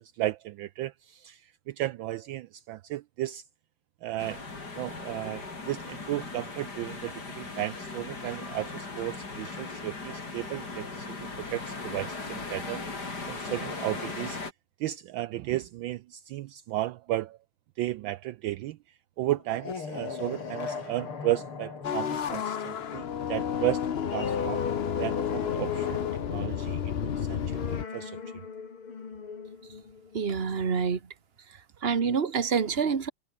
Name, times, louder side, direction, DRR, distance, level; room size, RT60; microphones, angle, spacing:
voice 1, 0.0-1.4 1.7-3.4 4.0-4.4 4.8-12.9 13.3-14.4 14.8-17.4 17.8-18.8 19.2-24.7 25.0-26.0 26.3-28.2, right 15 dB, 75° right, 1.3 m, -34 dB
sound 1, 4.2-14.5, left 3 dB, 50° left, 4.5 m, -38 dB
sound 2, 19.4-30.6, left 5 dB, 90° left, 4.0 m, -39 dB
sound 3, 21.8-27.8, left 8 dB, 75° left, 0.5 m, -31 dB
voice 2, 30.1-31.0 31.8-33.1, right 6 dB, 30° right, 1.6 m, -27 dB
omnidirectional pair, 2.3 m